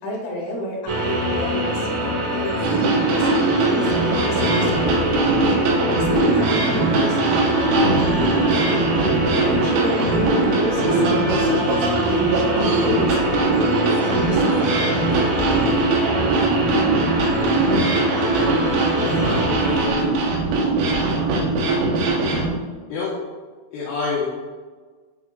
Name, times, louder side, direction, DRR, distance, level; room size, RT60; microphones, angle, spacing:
voice 1, 0.0-5.1 6.0-8.9 9.4-14.9, equal, 60° left, -3 dB, 2.8 m, -30 dB
sound 1, 0.9-19.9, right 1 dB, 50° right, 2.9 m, -24 dB
sound 2, 2.6-22.5, right 3 dB, 85° right, 3.6 m, -21 dB
voice 2, 18.9-20.2 22.9-23.2 23.7-24.3, left 4 dB, 75° left, -5 dB, 2.6 m, -28 dB
12.0 x 4.2 x 2.4 m, 1.5 s
omnidirectional pair, 5.6 m